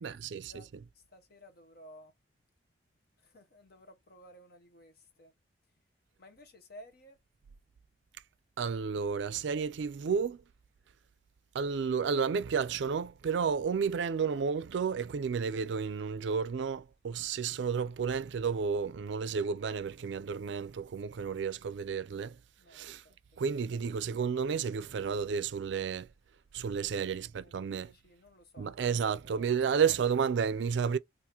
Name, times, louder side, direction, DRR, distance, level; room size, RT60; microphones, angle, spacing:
voice 1, 0.0-0.9 8.6-10.4 11.5-22.4 22.7-23.0 23.4-26.1 26.5-27.9 28.6-31.0, right 6 dB, 65° right, 0.4 m, -32 dB
voice 2, 1.8-2.1 3.3-3.4 3.7-3.9 4.1-4.5 4.7-4.9 6.2-6.3 6.7-7.1 28.2-28.7, equal, 55° left, 0.8 m, -52 dB
3.6 x 2.4 x 2.9 m
head